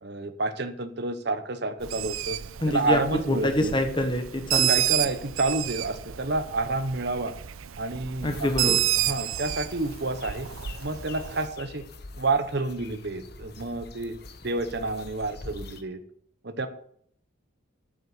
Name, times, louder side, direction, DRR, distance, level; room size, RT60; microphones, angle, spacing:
voice 1, 0.0-2.4 2.7-3.7 4.7-7.4 7.8-10.5 10.8-11.8 12.2-14.2 14.4-16.0 16.4-16.7, right 3 dB, 55° right, 9 dB, 1.0 m, -29 dB
Bird, 1.8-11.5, right 13 dB, 90° right, 0.6 m, -30 dB
voice 2, 2.6-3.0 3.3-4.7 8.2-8.8, left 1 dB, 25° left, 6 dB, 1.2 m, -25 dB
sound 1, 8.2-15.8, left 3 dB, 50° left, 1.1 m, -44 dB
9.5 x 7.7 x 7.9 m, 0.64 s
head